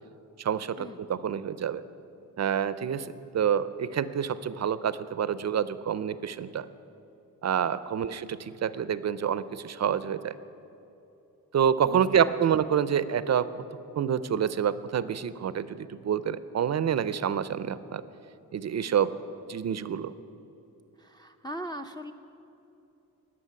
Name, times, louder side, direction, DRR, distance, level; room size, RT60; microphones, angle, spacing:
voice 1, 0.4-1.8 2.4-3.1 3.3-6.6 7.4-10.4 11.5-13.6 14.0-18.0 18.5-19.1 19.5-20.1, right 8 dB, 45° right, 15 dB, 0.5 m, -27 dB
voice 2, 21.0-22.1, equal, 10° left, 2 dB, 0.5 m, -40 dB
13.5 x 6.1 x 9.4 m, 2.9 s
cardioid pair, 90°, 37 cm